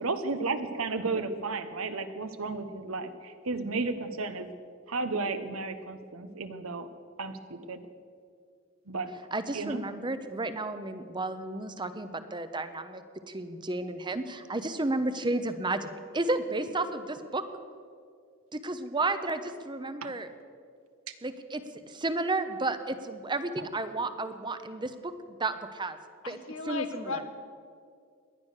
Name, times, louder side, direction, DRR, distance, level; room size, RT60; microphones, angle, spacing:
voice 1, 0.0-4.5 4.9-6.9 7.2-7.8 8.9-9.1 9.5-9.8 20.0-20.1 21.1-21.2, right 3 dB, 80° right, 9 dB, 1.1 m, -33 dB
voice 2, 9.3-13.0 13.3-15.9 16.1-17.4 18.5-20.3 21.2-21.6 21.9-25.1 25.4-26.0 26.3-26.4 26.6-27.2, right 2 dB, 20° right, 10 dB, 0.9 m, -32 dB
voice 3, 26.2-27.2, left 3 dB, 70° left, 7 dB, 1.4 m, -35 dB
18.5 x 11.5 x 6.6 m, 2.2 s
head